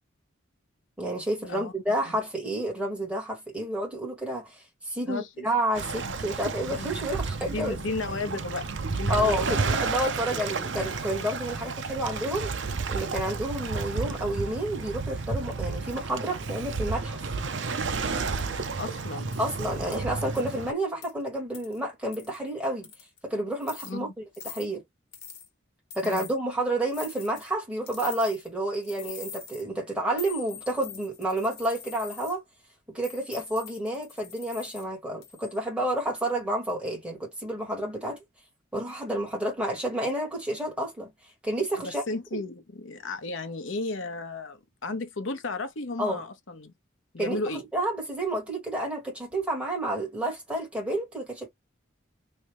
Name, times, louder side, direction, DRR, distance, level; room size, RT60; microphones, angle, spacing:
voice 1, 1.0-7.8 9.1-12.5 12.9-17.3 19.4-22.9 23.2-24.8 26.0-32.4 32.9-38.2 38.7-41.1 41.4-42.0 46.0-46.2 47.2-47.4 47.7-51.5, right 1 dB, 5° right, 1.9 m, -30 dB
voice 2, 1.5-2.2 5.0-5.5 6.1-6.2 6.6-7.0 7.4-9.6 10.3-10.5 11.5-11.7 18.8-19.3 23.8-24.1 26.0-26.3 41.8-46.7 47.1-47.6, left 3 dB, 75° left, 0.9 m, -34 dB
Waves surf, 5.8-20.7, right 4 dB, 65° right, 0.6 m, -31 dB
sound 1, 19.3-19.5 19.9-20.0 20.3-20.6 21.0-21.1 21.5-21.8 22.1-22.4 22.8-23.2 23.6-23.9 24.3-24.6 25.1-25.5 25.9-26.3 26.9-27.5 27.9-28.5 28.8-29.6 30.2-32.3 33.0-34.9 35.2-35.6, left 7 dB, 55° left, 1.7 m, -44 dB
3.3 x 2.8 x 3.0 m
head